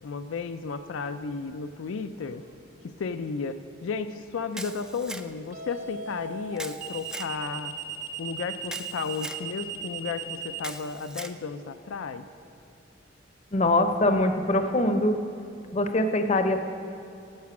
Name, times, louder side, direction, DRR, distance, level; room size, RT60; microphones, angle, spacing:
voice 1, 0.0-2.4 2.8-7.7 8.2-12.2, left 5 dB, 80° left, 9 dB, 0.4 m, -33 dB
sound 1, 2.2-2.6 5.5-10.6, right 8 dB, 45° right, 0.9 m, -37 dB
Camera, 4.5-5.5 6.6-7.3 8.6-9.4 10.6-11.4, right 1 dB, 5° right, 0.3 m, -39 dB
voice 2, 13.5-15.2 15.7-16.6, left 1 dB, 35° left, 7 dB, 0.7 m, -23 dB
12.0 x 7.3 x 6.0 m, 2.8 s
head